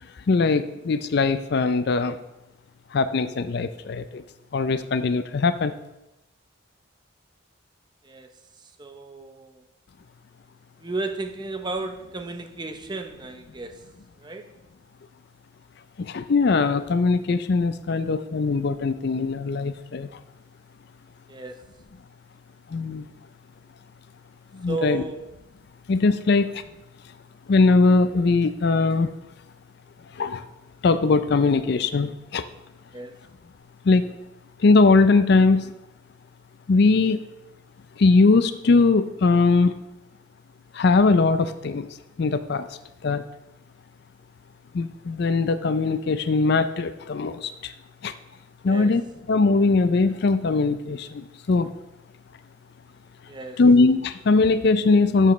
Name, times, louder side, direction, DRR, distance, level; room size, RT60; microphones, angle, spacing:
voice 1, 0.3-2.2 2.9-4.2 4.5-5.7 16.0-20.1 22.7-23.1 24.5-25.0 25.9-26.6 27.5-29.1 30.2-30.4 30.8-32.4 33.9-34.1 34.6-35.7 36.7-37.2 38.0-39.7 40.7-41.9 42.2-42.7 43.0-43.2 44.7-47.7 48.0-48.1 48.6-49.0 49.3-51.7 53.6-55.3, left 3 dB, 55° left, 0.4 m, -20 dB
voice 2, 8.6-9.6 10.8-13.9 14.2-14.5 21.3-21.7 24.7-25.3 26.3-26.4 32.9-33.2 48.6-49.0 53.3-53.6, right 3 dB, 20° right, 0.7 m, -34 dB
12.5 x 7.2 x 3.1 m
head